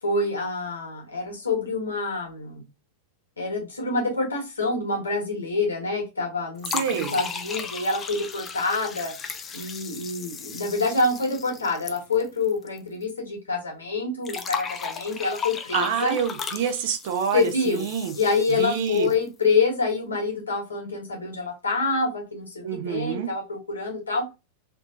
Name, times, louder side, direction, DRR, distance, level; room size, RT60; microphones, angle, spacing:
voice 1, 0.0-2.6 3.4-9.1 9.5-16.2 17.3-17.9 18.1-24.2, left 3 dB, 75° left, 1.5 m, -26 dB
sound 1, 6.6-12.8 13.0-13.1 14.3-19.3, left 6 dB, 25° left, 0.5 m, -36 dB
voice 2, 6.7-7.2 15.7-18.1 18.5-19.1 22.6-23.3, right 7 dB, 55° right, 0.6 m, -27 dB
3.3 x 3.0 x 2.4 m
figure-of-eight pair, 90°, 0 cm